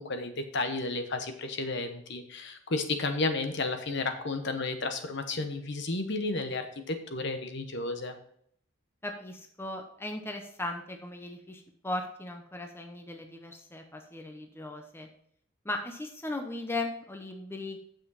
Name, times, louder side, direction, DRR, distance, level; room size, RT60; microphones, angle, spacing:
voice 1, 0.0-8.2, left 3 dB, 55° left, 7 dB, 1.0 m, -32 dB
voice 2, 9.0-15.1 15.6-17.8, left 2 dB, 10° left, 4 dB, 0.8 m, -37 dB
8.6 x 7.2 x 4.1 m, 0.66 s
head